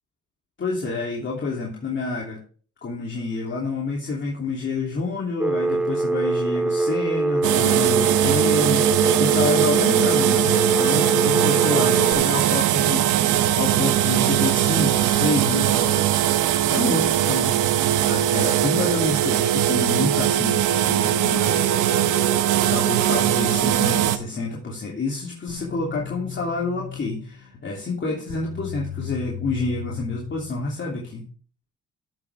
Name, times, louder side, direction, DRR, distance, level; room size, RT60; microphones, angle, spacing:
voice 1, 0.6-2.4 2.8-16.3 16.7-17.6 18.0-22.3 22.7-31.2, left 3 dB, 40° left, -3 dB, 3.0 m, -28 dB
Telephone, 5.4-12.1, right 2 dB, 5° right, 0.9 m, -23 dB
sound 1, 7.4-24.2, right 12 dB, 85° right, 1.0 m, -20 dB
sound 2, 25.5-31.1, left 11 dB, 90° left, 1.8 m, -37 dB
13.5 x 7.7 x 3.6 m, 0.42 s
cardioid pair, 90°, 30 cm